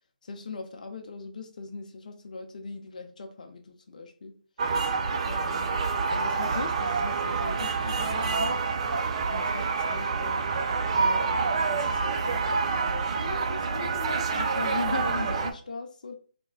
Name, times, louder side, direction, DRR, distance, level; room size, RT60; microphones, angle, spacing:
voice 1, 0.2-4.4 5.2-5.8 6.1-8.6 9.3-10.5 10.9-16.1, left 4 dB, 60° left, 5 dB, 0.6 m, -39 dB
sound 1, 4.6-15.5, right 4 dB, 45° right, 0.4 m, -27 dB
4.2 x 2.2 x 2.3 m, 0.43 s
figure-of-eight pair, 150°, 5 cm